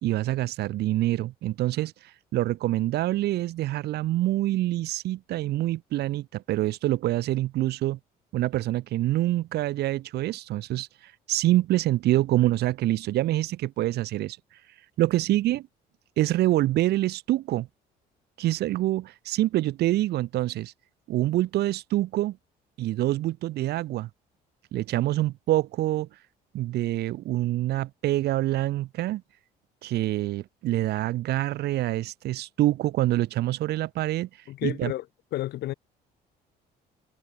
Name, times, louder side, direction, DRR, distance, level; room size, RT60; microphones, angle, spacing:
voice 1, 0.0-1.9 2.3-8.0 8.3-10.9 11.3-14.4 15.0-15.7 16.2-17.7 18.4-20.7 21.1-22.4 22.8-24.1 24.7-26.1 26.5-29.2 29.8-34.3 34.6-34.9, right 15 dB, 75° right, 2.2 m, -26 dB
voice 2, 34.5-35.1 35.3-35.7, left 15 dB, 75° left, 3.9 m, -31 dB
cardioid pair, 110°, 17 cm